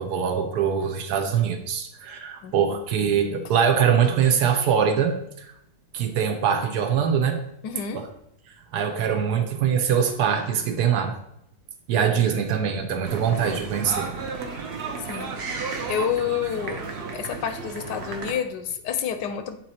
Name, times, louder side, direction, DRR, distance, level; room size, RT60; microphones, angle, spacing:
voice 1, 0.0-5.5 5.9-7.4 8.7-11.1 11.9-14.1, right 7 dB, 70° right, 6 dB, 1.3 m, -23 dB
voice 2, 7.6-8.0 15.1-15.3 15.6-16.8 17.1-19.6, left 8 dB, 85° left, 9 dB, 1.2 m, -29 dB
sound 1, 13.0-18.3, right 4 dB, 55° right, 0.8 m, -33 dB
7.4 x 3.0 x 4.2 m, 0.77 s
omnidirectional pair, 1.8 m